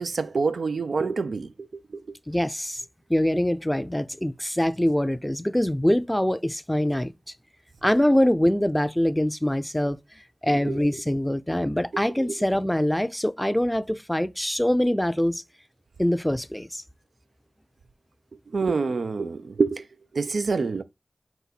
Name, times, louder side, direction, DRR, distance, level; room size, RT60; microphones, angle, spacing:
voice 1, 0.0-2.0 10.5-10.8 11.9-12.3 18.5-19.8 20.1-20.8, right 4 dB, 90° right, 0.3 m, -27 dB
voice 2, 2.3-2.8 3.1-7.1 7.8-10.0 10.4-15.4 16.0-16.8, left 1 dB, 10° left, 0.4 m, -24 dB
4.1 x 2.6 x 4.1 m
wide cardioid pair, 50°, 0 cm